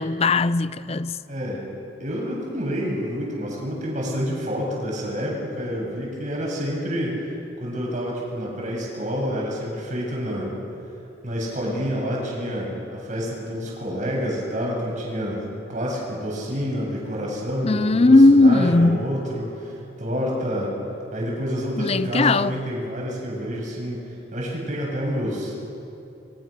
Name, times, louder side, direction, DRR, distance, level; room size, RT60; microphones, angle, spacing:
voice 1, 0.0-1.2 17.6-19.1 21.8-22.6, left 2 dB, 35° left, 0.6 m, -17 dB
voice 2, 1.3-1.6 2.0-7.2 7.6-10.5 11.2-20.7 21.1-24.0 24.3-25.5, equal, 45° right, 8.0 m, -28 dB
27.5 x 24.0 x 6.7 m
head